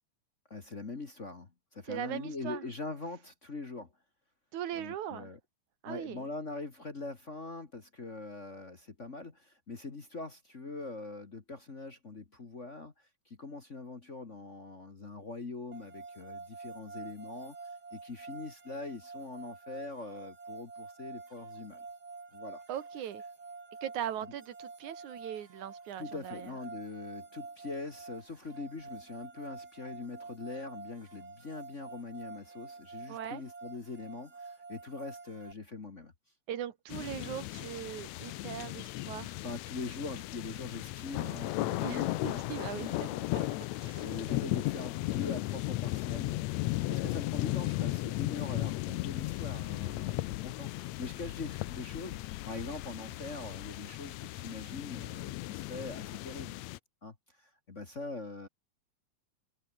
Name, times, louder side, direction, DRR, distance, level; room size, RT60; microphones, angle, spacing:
voice 1, 0.5-3.9 4.7-5.4 5.8-17.6 17.9-21.8 22.3-22.6 26.0-36.1 39.4-43.5 43.9-46.4 46.6-56.6 57.0-58.5, left 3 dB, 30° left, 1.6 m, -43 dB
voice 2, 1.9-2.6 4.5-5.3 5.8-6.3 22.7-23.2 23.8-26.6 33.1-33.4 36.5-39.4 41.8-43.4 43.8-44.4, right 10 dB, 85° right, 3.0 m, -40 dB
sound 1, 15.7-35.5, right 4 dB, 30° right, 3.5 m, -48 dB
sound 2, 36.9-56.8, left 18 dB, 80° left, 1.8 m, -36 dB
omnidirectional pair, 3.4 m